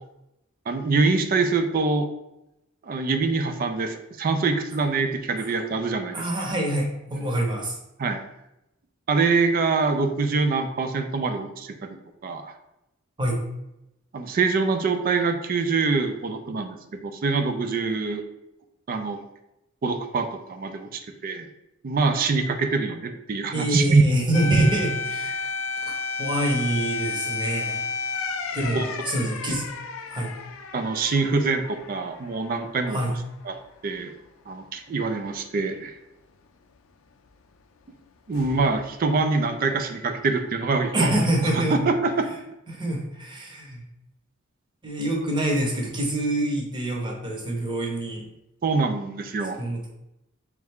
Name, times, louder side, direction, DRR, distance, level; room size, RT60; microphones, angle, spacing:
voice 1, 0.7-2.1 2.8-6.3 7.1-7.2 8.0-8.2 9.1-12.0 12.2-12.5 14.1-18.2 18.9-19.2 19.8-21.5 21.8-24.0 24.5-24.6 28.7-28.8 30.7-33.0 33.5-33.6 33.8-34.1 34.5-35.9 38.3-41.1 41.5-42.3 48.6-49.6, right 4 dB, 45° right, 7 dB, 0.4 m, -24 dB
voice 2, 6.1-7.8 13.2-13.4 23.5-25.5 25.8-27.8 28.5-29.7 30.1-30.3 32.9-33.2 40.9-41.9 42.7-43.8 44.8-48.2 49.6-49.9, right 1 dB, 25° right, -1 dB, 0.9 m, -26 dB
sound 1, 24.3-33.0 33.3-33.4 38.3-38.9, left 5 dB, 75° left, 0.4 m, -32 dB
3.5 x 3.2 x 3.5 m, 0.88 s
head